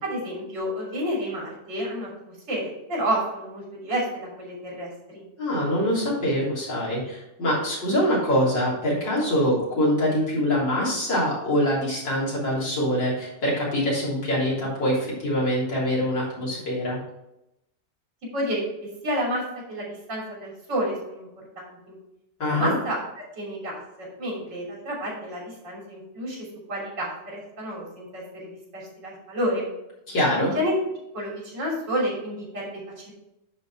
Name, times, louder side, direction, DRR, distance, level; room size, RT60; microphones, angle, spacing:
voice 1, 0.0-5.2 18.3-19.4 19.7-21.9 22.5-23.0 23.4-26.4 26.7-29.7 30.4-30.7 31.1-32.7 33.0-33.1, equal, 80° right, -4 dB, 3.9 m, -30 dB
voice 2, 5.4-17.0 22.4-22.7 30.1-30.5, equal, 85° left, -6 dB, 4.1 m, -24 dB
10.5 x 4.2 x 4.7 m, 0.88 s
omnidirectional pair, 1.9 m